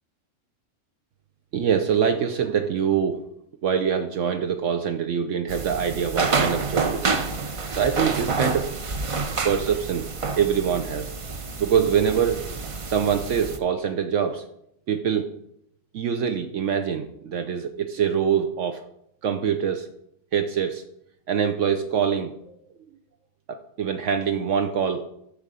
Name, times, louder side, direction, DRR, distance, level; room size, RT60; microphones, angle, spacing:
voice 1, 1.5-3.2 3.6-7.2 7.7-8.7 9.4-10.1 10.4-12.4 12.9-14.4 14.9-15.2 15.9-18.8 19.2-19.9 20.3-20.8 21.3-22.5 23.5-25.0, right 7 dB, 70° right, 6 dB, 1.0 m, -24 dB
sound 1, 5.5-13.6, right 4 dB, 40° right, 0.5 m, -28 dB
11.5 x 3.8 x 6.7 m, 0.76 s
omnidirectional pair, 1.4 m